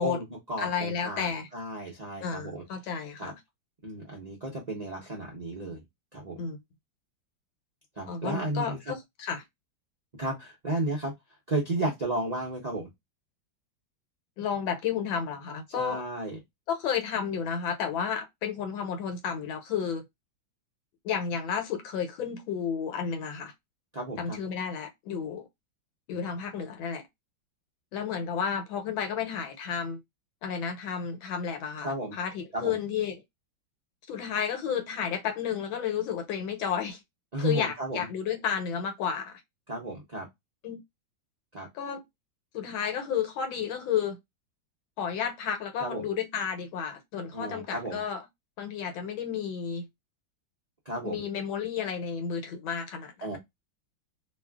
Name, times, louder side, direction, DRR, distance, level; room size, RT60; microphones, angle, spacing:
voice 1, 0.0-2.6 3.2-3.3 3.8-5.8 6.1-6.4 8.0-8.8 10.2-11.1 11.5-12.9 15.7-16.4 23.9-24.4 31.8-32.2 32.5-32.8 37.3-38.1 39.7-40.3 41.5-41.7 45.8-46.0 47.3-48.0 50.9-51.2 53.2-53.4, right 1 dB, 50° right, 0.4 m, -33 dB
voice 2, 0.6-1.5 2.2-3.3 6.4-6.6 8.1-9.4 14.4-16.0 16.7-20.0 21.0-23.5 24.2-25.4 26.1-27.0 27.9-30.0 30.4-33.2 34.1-37.0 37.4-39.4 40.6-40.8 41.7-42.0 42.5-44.2 45.0-48.2 48.6-49.9 51.0-53.4, left 7 dB, 85° left, 1.6 m, -32 dB
3.1 x 2.4 x 2.2 m
omnidirectional pair, 2.1 m